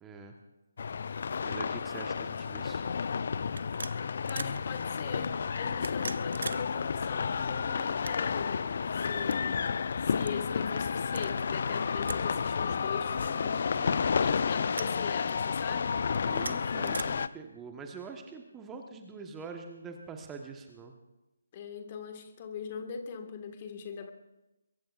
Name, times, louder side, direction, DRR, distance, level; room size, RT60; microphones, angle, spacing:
voice 1, 0.0-0.3 1.4-3.0 13.7-14.1 16.2-20.9, right 5 dB, 10° right, 3 dB, 1.3 m, -44 dB
sound 1, 0.8-17.3, left 6 dB, 50° left, 0.5 m, -31 dB
sound 2, 2.4-2.6 3.5-4.6 5.7-6.6 6.9-7.0 7.8-8.5 9.2-9.4 10.2-10.4 11.1-11.4 12.1-12.3 12.5-12.6 13.6-14.1 14.7-15.0 16.1-17.0, right 4 dB, 60° right, 0.6 m, -41 dB
voice 2, 4.3-9.7 10.0-13.7 14.2-16.0 21.5-24.1, left 6 dB, 30° left, 6 dB, 1.8 m, -41 dB
23.0 x 22.0 x 2.6 m, 0.96 s
figure-of-eight pair, 145°, 0 cm